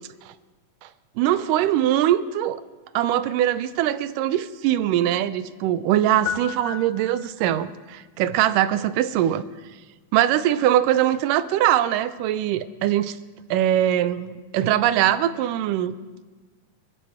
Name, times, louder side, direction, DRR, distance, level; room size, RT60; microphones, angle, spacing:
voice 1, 1.2-2.6 2.9-9.4 10.1-13.2 13.5-16.0, right 12 dB, 85° right, 14 dB, 2.2 m, -22 dB
sound 1, 6.3-7.7, left 9 dB, 80° left, 1.6 m, -33 dB
26.0 x 14.5 x 3.6 m, 1.3 s
omnidirectional pair, 3.7 m